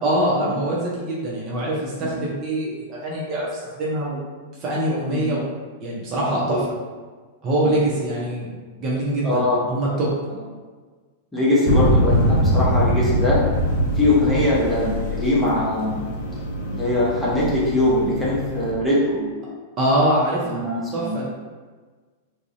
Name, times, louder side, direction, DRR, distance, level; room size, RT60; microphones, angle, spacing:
voice 1, 0.0-4.2 4.6-5.5 5.8-6.6 7.4-8.5 8.8-10.1 19.8-20.6 20.9-21.3, right 1 dB, 35° right, -6 dB, 0.6 m, -23 dB
voice 2, 6.2-6.6 7.6-7.7 9.2-9.6 11.3-13.4 14.0-16.0 16.7-19.3 20.4-21.2, left 1 dB, 10° left, -8 dB, 0.8 m, -22 dB
sound 1, 11.7-18.7, equal, 50° left, 0.5 m, -22 dB
2.4 x 2.0 x 2.5 m, 1.4 s
figure-of-eight pair, 95°, 0 cm